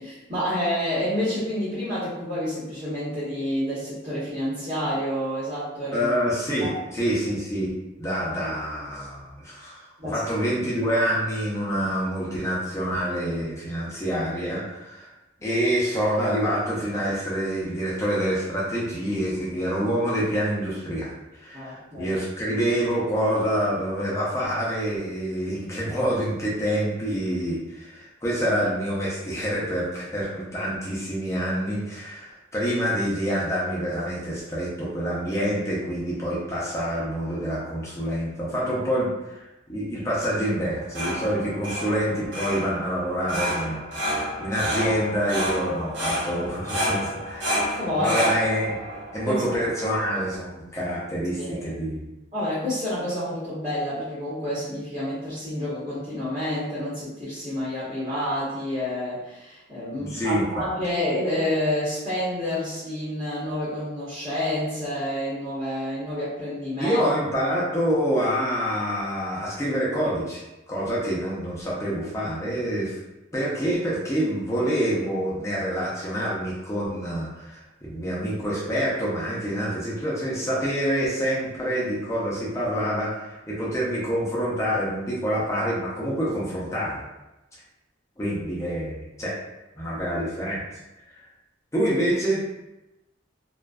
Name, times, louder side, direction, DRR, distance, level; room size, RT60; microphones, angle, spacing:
voice 1, 0.0-6.1 6.6-6.8 10.0-10.2 21.5-22.1 41.3-41.4 46.3-46.4 47.8-48.2 49.2-49.3 51.4-51.7 52.3-67.0, left 1 dB, 35° right, -11 dB, 1.0 m, -29 dB
voice 2, 5.9-7.7 8.0-15.1 15.4-43.8 44.4-47.7 47.9-48.7 49.1-52.0 59.9-60.7 66.8-73.0 73.3-87.1 88.2-89.4 89.8-90.8 91.1-91.2 91.7-92.4, equal, 15° left, -6 dB, 0.5 m, -27 dB
sound 1, 40.6-50.3, equal, 70° right, 0.7 m, -30 dB
2.4 x 2.2 x 2.3 m, 0.98 s
head